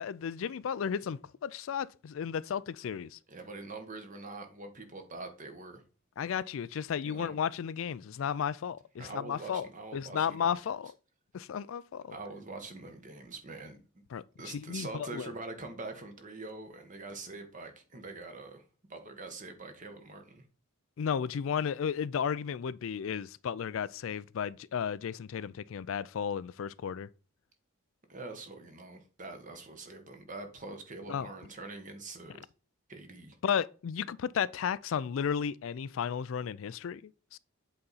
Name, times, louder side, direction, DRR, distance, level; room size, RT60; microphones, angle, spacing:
voice 1, 0.0-3.2 6.2-9.7 9.9-10.9 11.3-12.1 14.1-15.3 21.0-27.1 31.1-31.3 33.4-37.4, left 7 dB, 70° left, 0.4 m, -34 dB
voice 2, 3.3-5.8 7.0-7.3 9.0-10.5 12.1-14.0 14.4-18.6 18.9-20.4 28.1-32.4 32.9-33.4, right 3 dB, 40° right, 1.3 m, -44 dB
7.8 x 4.1 x 4.1 m
head